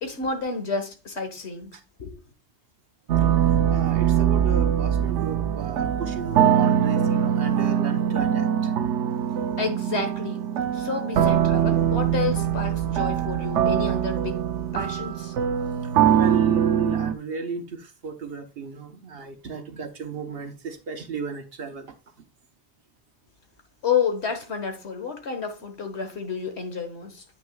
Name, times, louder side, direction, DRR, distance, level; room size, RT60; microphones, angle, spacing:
voice 1, 0.0-2.2 9.6-10.5 10.7-14.4 14.7-15.3 16.0-16.3 23.8-27.2, left 5 dB, 65° left, 1.7 m, -30 dB
sound 1, 3.1-17.1, right 9 dB, 85° right, 1.0 m, -22 dB
voice 2, 3.2-8.7 15.8-21.9, right 6 dB, 60° right, 1.2 m, -34 dB
8.9 x 6.2 x 2.3 m
omnidirectional pair, 1.2 m